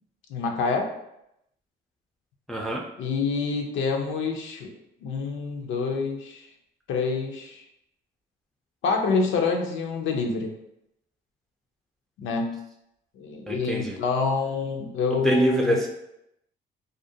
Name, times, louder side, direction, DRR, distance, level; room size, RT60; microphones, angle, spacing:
voice 1, 0.3-0.9 3.0-4.7 5.0-6.5 6.9-7.6 8.8-10.5 12.2-12.6 13.2-15.8, left 4 dB, 80° left, 3 dB, 0.5 m, -27 dB
voice 2, 2.5-2.8 13.5-14.0 15.2-15.9, right 1 dB, ahead, -1 dB, 0.3 m, -24 dB
2.4 x 2.1 x 2.6 m, 0.81 s
cardioid pair, 90°, 20 cm